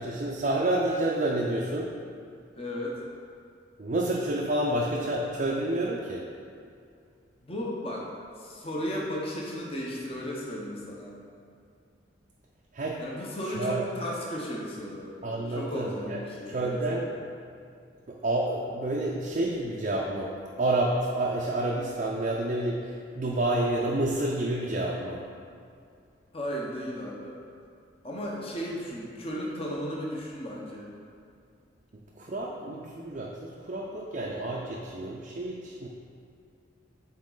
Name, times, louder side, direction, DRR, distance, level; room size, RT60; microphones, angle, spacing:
voice 1, 0.0-1.9 3.8-6.2 12.7-13.0 13.6-13.9 15.2-16.2 16.5-17.0 18.1-20.3 20.6-25.2 32.2-35.9, right 1 dB, 40° right, -3 dB, 0.5 m, -29 dB
voice 2, 2.5-3.0 7.4-8.1 8.4-11.1 13.0-15.1 15.5-17.1 26.3-27.4 28.0-30.9, equal, 30° left, -3 dB, 0.8 m, -35 dB
7.3 x 4.0 x 3.9 m, 2.4 s
head